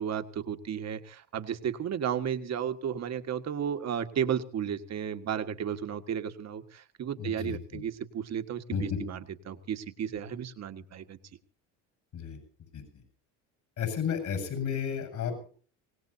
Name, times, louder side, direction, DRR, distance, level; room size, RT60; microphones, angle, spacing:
voice 1, 0.0-11.2, right 8 dB, 45° right, 8 dB, 1.7 m, -33 dB
voice 2, 7.2-7.8 8.7-9.0 12.1-12.4 12.7-13.0 13.8-15.5, left 7 dB, 55° left, 7 dB, 7.2 m, -33 dB
24.5 x 18.0 x 2.8 m, 0.41 s
supercardioid pair, 90°, 36 cm